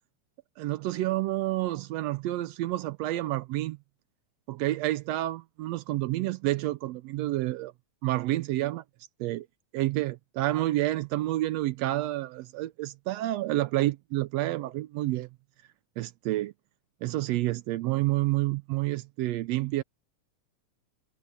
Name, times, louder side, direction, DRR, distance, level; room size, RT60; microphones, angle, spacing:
voice 1, 0.6-3.8 4.5-7.7 8.0-8.8 9.2-9.5 9.7-15.3 16.0-16.5 17.0-19.8, right 16 dB, 80° right, 1.5 m, -29 dB
omnidirectional pair, 3.4 m